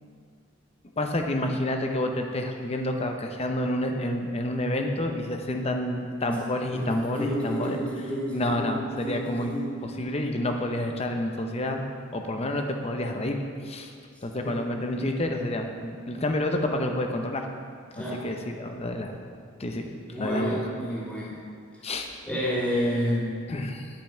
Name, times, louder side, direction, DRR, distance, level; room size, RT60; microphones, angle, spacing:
voice 1, 1.0-7.8 8.3-13.4 13.6-13.9 14.2-17.5 18.0-19.1 19.6-19.9 20.2-20.6 21.8-22.1 23.5-23.9, left 1 dB, 30° left, 4 dB, 0.7 m, -29 dB
voice 2, 6.7-9.7 14.4-14.6 17.9-18.3 20.1-21.4 22.3-23.4, equal, 5° left, -8 dB, 2.0 m, -30 dB
10.5 x 5.4 x 4.4 m, 2.2 s
head